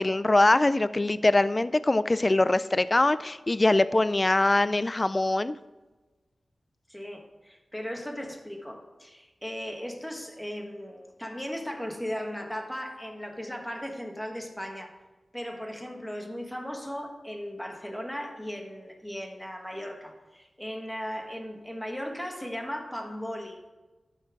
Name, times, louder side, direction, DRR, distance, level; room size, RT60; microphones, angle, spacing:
voice 1, 0.0-5.6, left 2 dB, 30° left, 15 dB, 0.3 m, -23 dB
voice 2, 6.9-14.9 15.3-23.6, equal, 5° left, 2 dB, 1.5 m, -37 dB
12.5 x 4.4 x 5.9 m, 1.2 s
wide cardioid pair, 80°, 0 cm